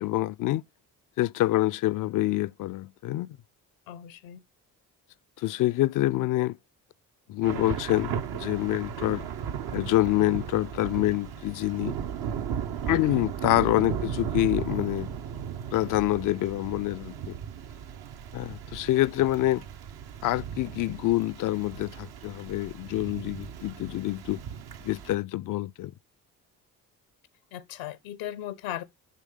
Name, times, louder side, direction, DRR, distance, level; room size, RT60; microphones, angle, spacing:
voice 1, 0.0-0.6 1.2-3.4 5.4-6.6 7.3-9.2 9.7-11.9 12.8-15.1 15.7-17.4 18.3-19.6 20.2-24.4 24.8-25.9, left 16 dB, 50° left, 0.4 m, -26 dB
voice 2, 3.9-4.4 27.5-28.8, left 12 dB, 85° left, 0.8 m, -37 dB
Thunder / Rain, 7.4-25.1, right 8 dB, 60° right, 0.8 m, -36 dB
9.5 x 3.2 x 3.6 m
hypercardioid pair, 45°, 44 cm